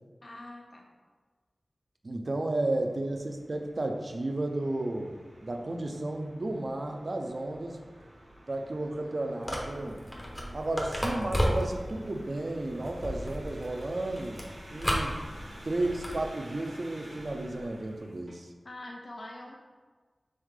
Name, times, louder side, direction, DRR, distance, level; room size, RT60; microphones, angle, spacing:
voice 1, 0.2-0.9 2.8-2.9 18.6-19.6, left 1 dB, 55° left, 0 dB, 0.4 m, -44 dB
voice 2, 2.0-5.1 5.4-7.8 8.5-10.0 10.5-14.4 14.7-15.2 15.6-18.5, right 2 dB, 50° right, 4 dB, 0.4 m, -33 dB
sound 1, 2.7-18.3, equal, 75° right, 0.9 m, -51 dB
sound 2, 9.4-16.3, equal, 15° left, 0.6 m, -34 dB
3.6 x 3.2 x 3.6 m, 1.4 s
wide cardioid pair, 90°, 0 cm